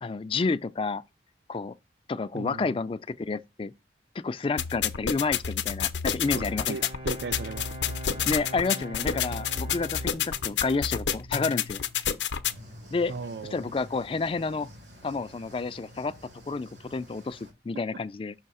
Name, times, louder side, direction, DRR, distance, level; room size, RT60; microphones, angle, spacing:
voice 1, 0.0-1.0 1.5-1.7 2.1-3.7 4.1-6.8 8.3-11.8 12.9-13.1 13.5-14.7 15.0-16.1 16.5-18.3, left 4 dB, 30° left, 0.3 m, -30 dB
voice 2, 2.3-2.7 6.3-6.4 6.7-7.7 13.1-13.7, right 4 dB, 70° right, 0.4 m, -37 dB
sound 1, 4.6-12.6, left 8 dB, 85° left, 0.6 m, -29 dB
Bowed string instrument, 6.0-11.7, equal, 35° right, 0.7 m, -43 dB
sound 2, 12.5-17.5, equal, 90° right, 3.0 m, -49 dB
6.5 x 2.7 x 5.5 m
head